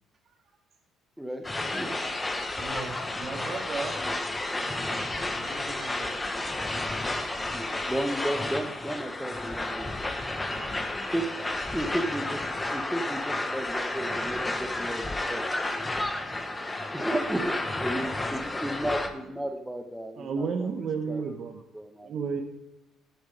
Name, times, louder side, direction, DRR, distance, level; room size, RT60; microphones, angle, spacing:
sound 1, 1.4-19.1, left 2 dB, 15° left, 1.1 m, -32 dB
voice 1, 2.5-4.1 4.5-6.7 10.5-11.1 11.7-12.0 16.0-17.1 17.5-19.3, right 3 dB, 40° right, 3 dB, 2.2 m, -43 dB
voice 2, 7.5-10.2 11.1-11.3 11.7-15.5 16.9-20.7 21.1-21.2 21.7-22.1, right 1 dB, 5° right, 4 dB, 1.0 m, -33 dB
voice 3, 20.2-21.6 22.0-22.4, right 5 dB, 55° right, 4 dB, 1.0 m, -31 dB
9.5 x 7.3 x 5.2 m, 1.0 s
cardioid pair, 85°, 0 cm